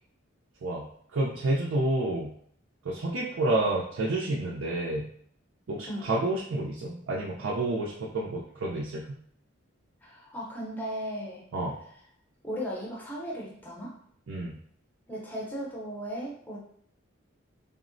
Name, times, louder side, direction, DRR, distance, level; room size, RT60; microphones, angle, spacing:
voice 1, 1.1-2.3 2.8-5.1 5.7-9.2 11.5-11.7 14.3-14.6, right 2 dB, 70° right, -4 dB, 0.4 m, -29 dB
voice 2, 10.0-11.5 12.4-13.9 15.1-16.6, equal, 10° left, -4 dB, 0.6 m, -36 dB
3.6 x 2.0 x 2.5 m, 0.63 s
head